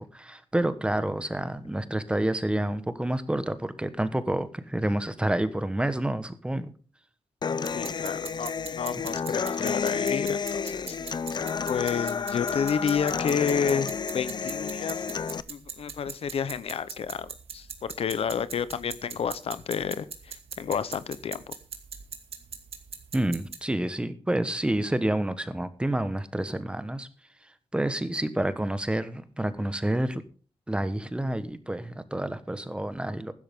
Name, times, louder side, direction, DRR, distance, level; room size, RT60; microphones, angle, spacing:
voice 1, 0.0-6.7 8.9-9.1 9.6-9.8 23.1-27.1 27.4-30.2 30.7-33.3, right 1 dB, 10° right, 12 dB, 1.3 m, -29 dB
Human voice / Acoustic guitar, 7.4-15.4, left 6 dB, 50° left, 0.7 m, -31 dB
voice 2, 7.7-11.0 11.7-15.0 15.5-21.5, left 7 dB, 80° left, 15 dB, 0.9 m, -30 dB
sound 1, 7.7-23.6, right 6 dB, 80° right, 2.4 m, -42 dB
15.5 x 12.5 x 3.8 m, 0.40 s
wide cardioid pair, 135°, 10 cm